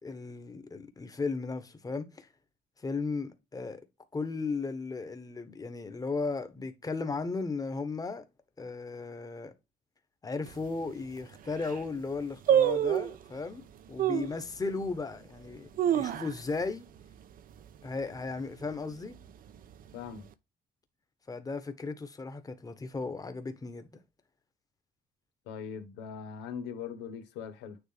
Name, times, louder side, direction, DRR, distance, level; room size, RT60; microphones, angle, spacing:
voice 1, 0.0-2.3 2.8-3.8 4.1-8.2 8.6-9.5 10.2-16.9 17.8-19.2 21.3-24.0, left 4 dB, 20° left, 1.4 m, -36 dB
sound 1, 10.5-10.6 11.2-11.3 11.5-11.9 12.5-13.2 14.0-14.4 14.9-15.0 15.5-16.7 17.0-17.1 17.4-17.8 18.2-18.5 19.1-19.9 20.2-20.3, right 10 dB, 55° right, 0.8 m, -27 dB
voice 2, 19.9-20.3 25.5-27.8, left 7 dB, 90° left, 1.5 m, -40 dB
9.4 x 3.6 x 3.4 m
cardioid pair, 110°, 17 cm